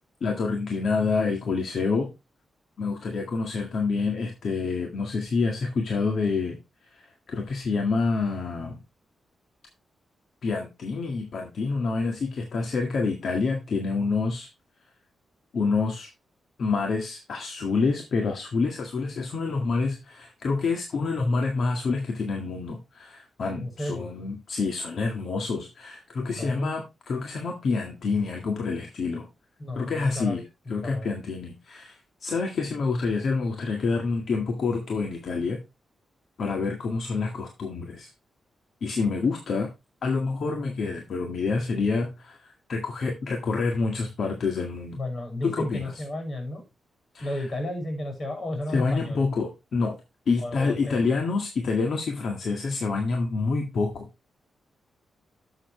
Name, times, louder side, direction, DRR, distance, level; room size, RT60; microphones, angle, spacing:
voice 1, 0.2-2.1 2.8-6.6 6.9-8.8 10.4-14.5 15.5-16.1 16.6-29.3 29.8-30.4 30.7-35.6 36.4-38.1 38.8-39.7 40.0-45.0 45.4-45.9 47.1-47.4 48.7-50.0 50.3-54.1, left 4 dB, 65° left, 3 dB, 1.8 m, -27 dB
voice 2, 23.6-24.1 26.3-26.8 29.6-30.4 30.8-31.1 44.9-46.6 47.2-49.3 50.4-51.0, left 1 dB, 40° left, 3 dB, 6.4 m, -33 dB
12.0 x 7.2 x 3.2 m, 0.24 s
cardioid pair, 110°, 0 cm